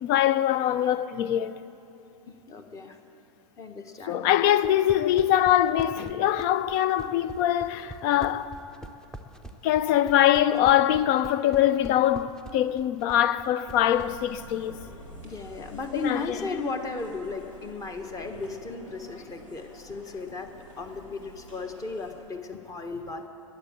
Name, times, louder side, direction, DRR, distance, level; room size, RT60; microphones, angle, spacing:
voice 1, 0.0-1.6 4.1-8.5 9.6-14.8 15.9-16.2, left 11 dB, 40° left, 0.6 m, -23 dB
voice 2, 2.3-3.0 3.6-4.2 15.2-20.5 20.8-23.3, left 3 dB, 20° left, 1.2 m, -35 dB
sound 1, 4.5-14.1, equal, 5° left, 0.7 m, -43 dB
sound 2, 13.7-22.2, equal, 70° left, 3.2 m, -48 dB
20.0 x 7.4 x 8.8 m
figure-of-eight pair, 90°, 16 cm